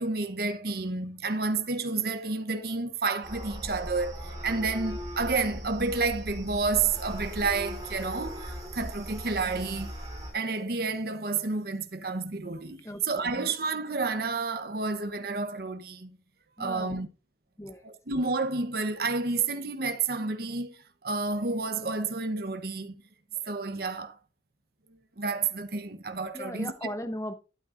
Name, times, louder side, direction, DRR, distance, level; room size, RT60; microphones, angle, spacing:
voice 1, 0.0-10.0 10.3-16.2 16.6-17.1 17.8-22.9 23.4-24.2 25.2-26.7, right 4 dB, 55° right, 0.9 m, -30 dB
sound 1, 3.2-10.3, equal, 20° right, 4.5 m, -39 dB
voice 2, 12.8-13.5 16.6-17.1 17.6-17.9 26.3-27.3, left 1 dB, 15° left, 0.7 m, -38 dB
12.5 x 8.9 x 2.6 m
head